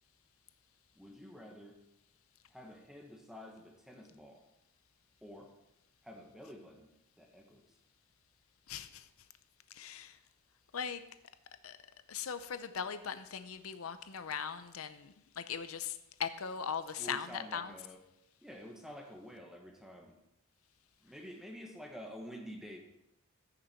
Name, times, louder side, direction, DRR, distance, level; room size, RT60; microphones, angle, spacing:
voice 1, 0.9-1.8 2.5-4.4 5.2-5.5 6.0-6.9 7.2-7.6 17.0-18.0 18.4-20.1 21.0-22.8, equal, ahead, 1 dB, 1.4 m, -49 dB
voice 2, 8.7-9.1 9.7-10.2 10.7-11.0 11.6-11.8 12.1-17.7, left 7 dB, 85° left, 11 dB, 0.7 m, -39 dB
15.0 x 6.8 x 4.5 m, 0.85 s
head